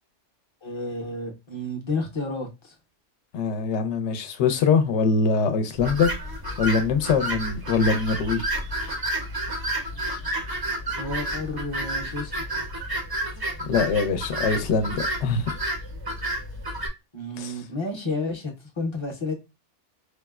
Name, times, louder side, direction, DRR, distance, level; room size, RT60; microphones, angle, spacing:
voice 1, 0.6-2.7 11.0-12.4 17.1-19.3, left 2 dB, 30° left, 0.6 m, -31 dB
voice 2, 3.3-6.1 6.6-8.4 13.6-15.5 17.4-17.5, left 5 dB, 75° left, 0.9 m, -23 dB
sound 1, 5.8-16.9, right 1 dB, 30° right, 0.4 m, -30 dB
4.6 x 2.0 x 2.2 m
omnidirectional pair, 1.2 m